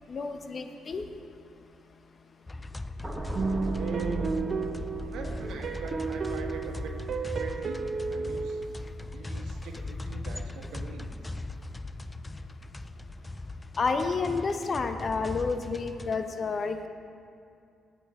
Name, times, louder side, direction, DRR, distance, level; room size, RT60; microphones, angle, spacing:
voice 1, 0.1-1.0 13.8-16.9, left 4 dB, 40° left, 7 dB, 0.9 m, -30 dB
sound 1, 2.5-16.2, left 2 dB, 15° left, 0.4 m, -39 dB
sound 2, 3.0-9.3 9.7-10.0, right 1 dB, 15° right, 1.4 m, -40 dB
sound 3, 3.3-8.7, right 4 dB, 50° right, 0.8 m, -33 dB
voice 2, 3.7-4.6 5.1-6.9 7.4-7.8 8.1-8.6 9.1-11.4, right 4 dB, 80° right, 2 dB, 1.5 m, -40 dB
18.5 x 8.6 x 3.8 m, 2.5 s
cardioid pair, 90°, 0 cm